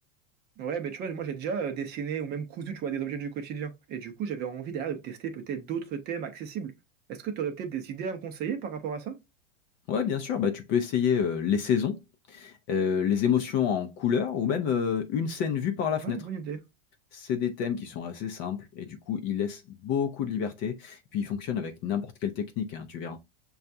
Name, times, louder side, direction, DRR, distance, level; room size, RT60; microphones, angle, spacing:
voice 1, 0.6-6.7 7.1-9.2 16.0-16.6, right 7 dB, 25° right, 0.6 m, -34 dB
voice 2, 9.9-12.0 12.3-16.2 17.1-23.2, left 7 dB, 35° left, 0.4 m, -28 dB
6.4 x 2.3 x 2.6 m
supercardioid pair, 150°, 37 cm